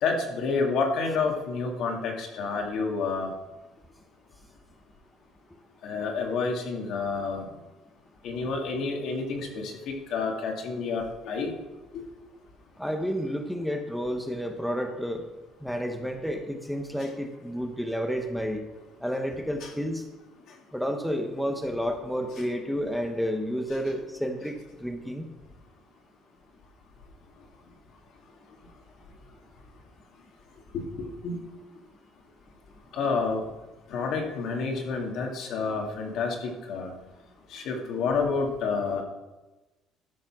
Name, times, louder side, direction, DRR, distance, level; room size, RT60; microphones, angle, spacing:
voice 1, 0.0-3.3 5.8-7.5 8.2-11.5 11.9-12.0 19.6-19.7 30.7-31.4 32.9-33.4 33.9-36.9 37.5-39.0, left 4 dB, 65° left, 1 dB, 2.3 m, -29 dB
voice 2, 12.8-15.2 15.6-18.6 19.0-20.0 20.7-25.3, equal, ahead, 4 dB, 1.0 m, -30 dB
13.0 x 5.5 x 6.0 m, 1.1 s
cardioid pair, 130°, 0 cm